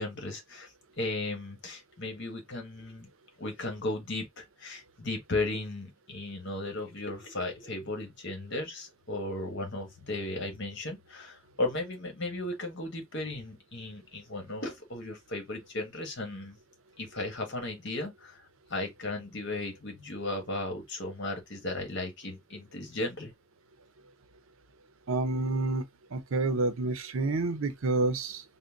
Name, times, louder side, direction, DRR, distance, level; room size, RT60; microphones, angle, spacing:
voice 1, 0.0-3.1 3.4-16.6 17.0-23.3, left 2 dB, 55° left, 1.3 m, -36 dB
voice 2, 25.1-25.8 26.1-28.4, right 3 dB, 70° right, 0.6 m, -28 dB
3.8 x 2.1 x 3.5 m
head